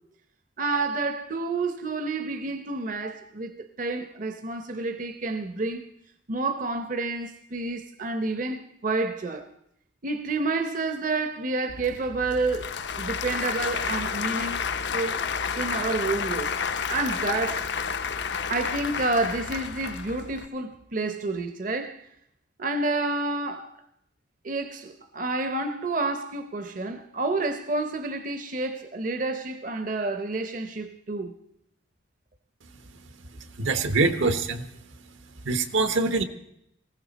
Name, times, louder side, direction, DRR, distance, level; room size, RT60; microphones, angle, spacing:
voice 1, 0.6-5.9 6.3-9.5 10.0-14.6 14.9-15.2 15.6-16.5 16.9-17.7 18.5-22.0 22.6-23.7 24.4-31.3, right 3 dB, 40° right, 0.7 m, -29 dB
Applause / Crowd, 11.7-20.5, left 6 dB, 60° left, 0.6 m, -31 dB
voice 2, 33.6-34.7 35.4-36.2, right 3 dB, 80° right, 1.2 m, -24 dB
19.0 x 15.5 x 4.1 m
head